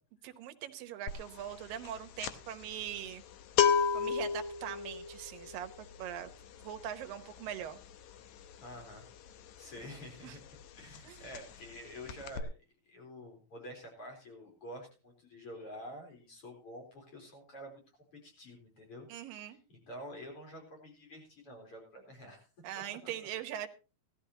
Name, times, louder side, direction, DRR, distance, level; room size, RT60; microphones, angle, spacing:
voice 1, 0.2-3.2 3.9-6.3 6.6-7.8 10.2-10.4 11.0-11.4 19.1-19.6 22.6-23.7, right 10 dB, 75° right, 7 dB, 2.6 m, -42 dB
sound 1, 1.1-1.3 1.6-10.2 10.5-10.7 10.9-11.8 12.1-12.4, left 7 dB, 70° left, 1.8 m, -33 dB
voice 2, 8.6-9.1 9.6-10.4 10.7-12.5 12.8-17.8 18.2-19.1 19.9-22.5 23.0-23.1, equal, 40° left, 1 dB, 4.6 m, -48 dB
18.0 x 13.0 x 2.8 m, 0.32 s
omnidirectional pair, 4.2 m